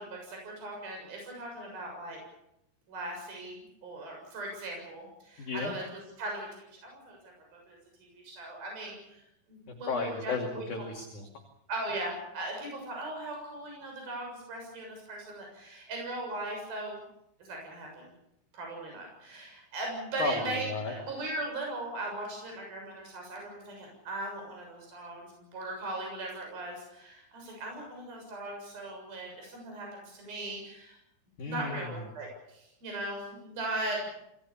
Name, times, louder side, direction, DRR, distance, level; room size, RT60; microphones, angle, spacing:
voice 1, 0.0-2.2 2.9-5.8 6.2-7.2 7.7-10.7 11.7-17.0 17.4-18.1 18.5-31.0 31.4-34.0, right 2 dB, 55° right, 1 dB, 8.9 m, -39 dB
voice 2, 5.4-5.7 9.7-11.3 20.2-21.0 31.4-32.0, left 4 dB, 50° left, 1 dB, 3.6 m, -34 dB
27.5 x 19.0 x 7.2 m, 0.84 s
omnidirectional pair, 5.0 m